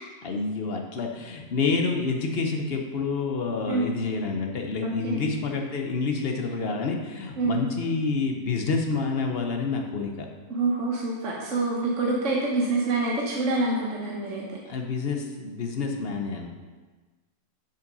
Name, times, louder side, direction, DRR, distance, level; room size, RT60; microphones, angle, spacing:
voice 1, 0.2-10.3 14.7-16.5, left 4 dB, 50° left, 3 dB, 0.8 m, -28 dB
voice 2, 4.8-5.2 7.4-7.6 10.5-14.4, right 2 dB, 50° right, -3 dB, 1.3 m, -26 dB
7.4 x 5.6 x 5.3 m, 1.3 s
omnidirectional pair, 1.8 m